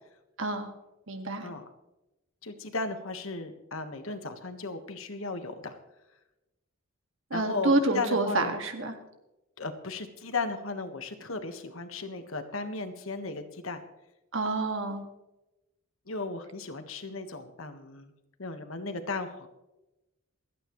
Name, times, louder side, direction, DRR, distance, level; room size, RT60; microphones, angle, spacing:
voice 1, 0.4-0.7 1.1-1.5 7.3-8.9 14.3-15.0, right 2 dB, 65° right, 6 dB, 2.0 m, -28 dB
voice 2, 2.4-5.8 7.3-8.5 9.6-13.8 16.1-18.1 18.4-19.5, left 3 dB, 70° left, 7 dB, 1.5 m, -36 dB
28.0 x 9.3 x 3.2 m, 0.98 s
head